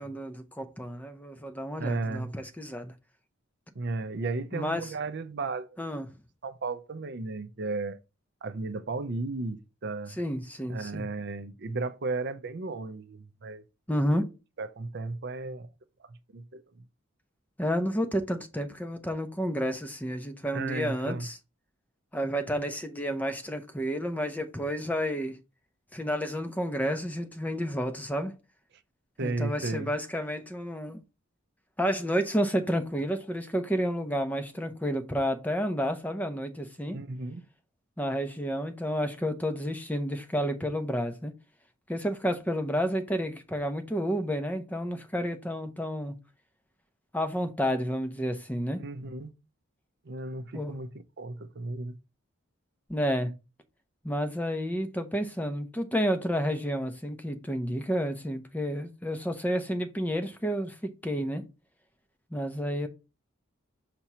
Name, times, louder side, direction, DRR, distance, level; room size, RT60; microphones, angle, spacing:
voice 1, 0.0-2.9 4.5-4.9 5.8-6.1 10.2-11.1 13.9-14.2 17.6-21.4 22.1-25.4 25.9-28.3 29.2-31.0 31.8-37.0 38.0-41.3 41.9-46.1 47.1-48.8 50.5-50.7 52.9-53.3 54.0-61.4 62.3-62.9, equal, 10° left, 0.6 m, -30 dB
voice 2, 1.8-2.3 3.8-5.7 6.4-8.0 8.4-10.2 10.7-13.6 14.6-15.7 16.1-16.6 20.5-21.3 29.2-29.9 36.9-37.4 48.8-49.3 50.0-52.0, right 3 dB, 50° right, 0.5 m, -34 dB
5.9 x 2.9 x 5.4 m
head